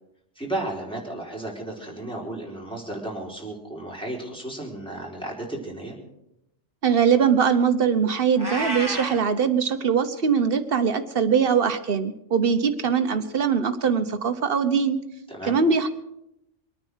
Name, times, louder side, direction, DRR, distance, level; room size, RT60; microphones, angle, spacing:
voice 1, 0.3-6.0 15.3-15.5, right 1 dB, 5° left, -3 dB, 4.4 m, -33 dB
voice 2, 6.8-15.0 15.5-16.0, right 6 dB, 50° right, 10 dB, 1.3 m, -22 dB
Meow, 8.4-9.2, right 1 dB, 20° right, 4.0 m, -30 dB
23.5 x 9.5 x 6.3 m, 0.84 s
omnidirectional pair, 1.2 m